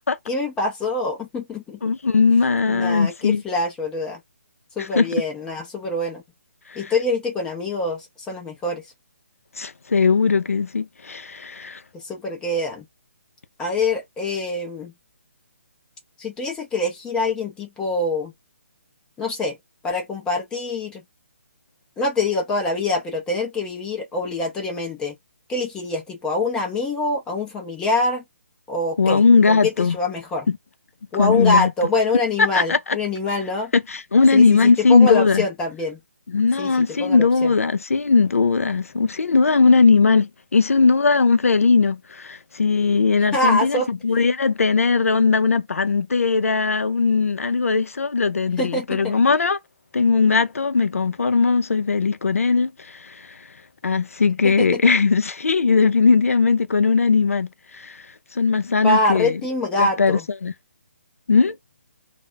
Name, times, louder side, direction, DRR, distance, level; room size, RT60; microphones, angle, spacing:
voice 1, 0.3-1.8 2.7-4.2 4.8-6.2 6.8-8.8 11.9-12.9 13.6-14.9 16.2-18.3 19.2-19.6 19.8-21.0 22.0-25.1 25.5-28.2 28.7-29.2 29.5-30.5 31.1-33.7 34.3-36.0 36.6-37.5 43.3-43.9 48.6-49.1 54.4-54.8 58.8-60.3, left 2 dB, 10° left, 0.5 m, -25 dB
voice 2, 1.8-3.4 4.8-5.1 6.7-6.9 9.6-11.8 29.0-30.0 31.2-31.7 32.5-33.0 33.7-35.4 36.3-49.6 49.9-53.4 53.8-57.5 57.7-58.0 58.3-59.3 59.8-60.5 61.3-61.6, left 4 dB, 90° left, 0.4 m, -19 dB
2.2 x 2.1 x 3.8 m
hypercardioid pair, 155°, 7 cm